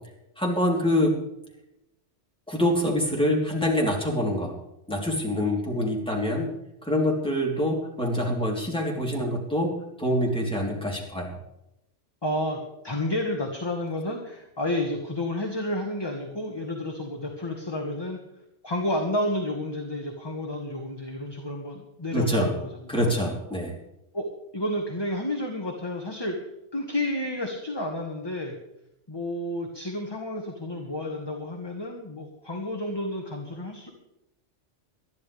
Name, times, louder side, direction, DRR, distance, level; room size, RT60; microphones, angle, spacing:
voice 1, 0.4-1.2 2.5-4.5 4.9-6.5 6.8-11.4 22.1-22.5 22.9-23.8, equal, 5° left, -2 dB, 3.5 m, -25 dB
voice 2, 12.2-18.2 18.6-23.1 24.1-24.3 24.5-26.4 26.7-28.5 29.1-33.9, left 1 dB, 20° left, 1 dB, 1.7 m, -31 dB
21.0 x 13.0 x 3.5 m, 0.85 s
omnidirectional pair, 1.2 m